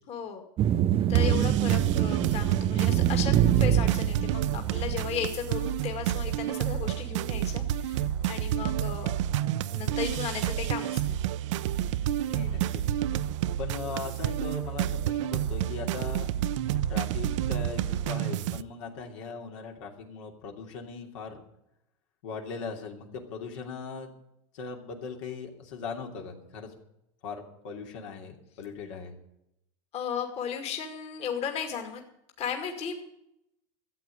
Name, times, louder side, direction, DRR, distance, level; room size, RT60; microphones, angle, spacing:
voice 1, 0.1-0.4 1.1-9.1 9.7-11.2 29.9-32.0 32.4-32.9, left 7 dB, 40° left, 4 dB, 2.3 m, -35 dB
sound 1, 0.6-5.1, right 10 dB, 35° right, 0.5 m, -25 dB
sound 2, 1.2-18.6, right 11 dB, 80° right, 0.6 m, -30 dB
voice 2, 12.2-12.8 13.6-16.3 16.9-21.4 22.2-24.1 24.5-26.7 27.2-29.1, left 5 dB, 80° left, 2 dB, 2.9 m, -39 dB
13.5 x 8.5 x 9.6 m, 0.81 s
supercardioid pair, 125°, 16 cm